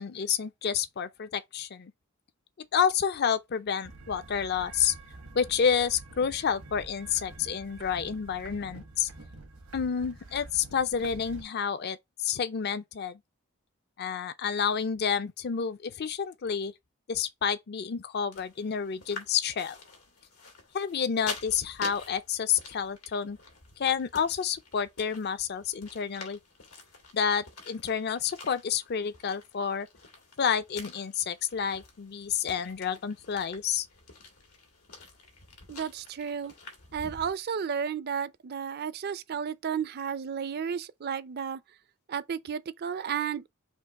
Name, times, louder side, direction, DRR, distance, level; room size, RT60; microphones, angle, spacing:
voice 1, 0.0-1.9 2.7-4.9 5.3-9.1 9.7-13.2 14.0-16.7 17.1-19.8 20.7-23.4 23.8-26.4 27.1-29.9 30.4-33.9, left 7 dB, 50° left, 0.5 m, -29 dB
sound 1, 3.8-11.4, right 2 dB, 90° right, 1.4 m, -47 dB
sound 2, 18.3-37.3, left 4 dB, 90° left, 1.8 m, -47 dB
voice 2, 35.7-36.5 36.9-41.6 42.1-43.4, right 7 dB, 50° right, 0.4 m, -33 dB
4.5 x 2.9 x 3.9 m
head